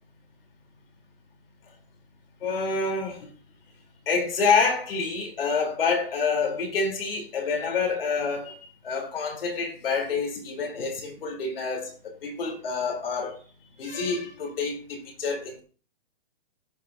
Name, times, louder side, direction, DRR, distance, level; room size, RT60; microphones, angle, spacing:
voice 1, 2.4-3.3 4.1-8.5 8.8-13.3 13.8-15.6, left 4 dB, 70° left, 3.6 m, -27 dB
16.5 x 6.1 x 2.7 m
hypercardioid pair, 165°, 29 cm